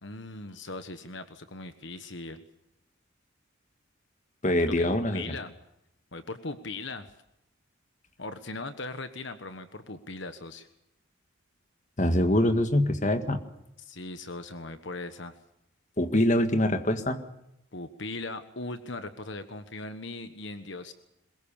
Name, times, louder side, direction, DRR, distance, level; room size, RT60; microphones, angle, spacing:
voice 1, 0.0-2.4 4.6-5.6 6.1-7.1 8.2-10.7 13.8-15.4 17.7-20.9, left 2 dB, 60° left, 10 dB, 1.3 m, -39 dB
voice 2, 4.4-5.2 12.0-13.4 16.0-17.2, left 1 dB, 35° left, 8 dB, 1.8 m, -24 dB
22.5 x 21.0 x 7.1 m, 0.86 s
head